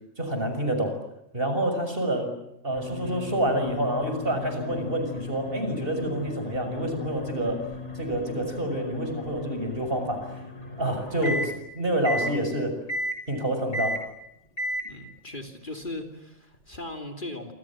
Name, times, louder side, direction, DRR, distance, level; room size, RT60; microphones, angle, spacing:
voice 1, 0.2-1.0 1.3-2.3 2.6-7.6 7.9-10.3 10.8-12.7 13.3-14.0, right 1 dB, 45° right, 6 dB, 6.7 m, -28 dB
sound 1, 2.7-11.6 12.1-12.4 12.9-13.2 13.7-14.1 14.6-14.9, left 1 dB, 60° left, 6.2 m, -35 dB
voice 2, 14.8-17.5, left 2 dB, 40° left, 5 dB, 3.2 m, -38 dB
28.5 x 26.0 x 7.5 m, 0.81 s
omnidirectional pair, 1.3 m